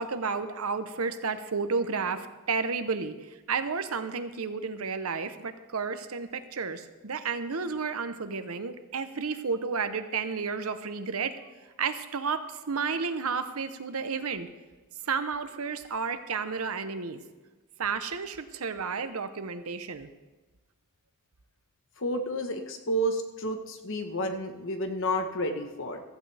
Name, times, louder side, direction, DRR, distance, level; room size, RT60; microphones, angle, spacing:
voice 1, 0.0-11.4 11.8-14.5 15.0-17.2 17.8-20.1, right 5 dB, 85° right, 10 dB, 0.9 m, -32 dB
voice 2, 22.0-26.0, equal, 60° left, 6 dB, 1.3 m, -30 dB
15.0 x 14.0 x 3.5 m, 1.2 s
head